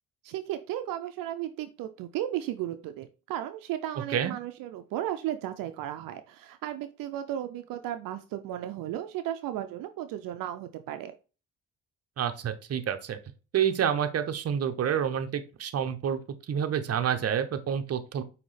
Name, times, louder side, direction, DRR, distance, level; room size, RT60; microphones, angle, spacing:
voice 1, 0.2-11.1, right 12 dB, 80° right, 9 dB, 0.5 m, -35 dB
voice 2, 12.2-13.2 13.5-16.2 16.5-18.2, right 8 dB, 45° right, 9 dB, 0.7 m, -28 dB
5.2 x 2.8 x 3.2 m, 0.33 s
supercardioid pair, 70°, 33 cm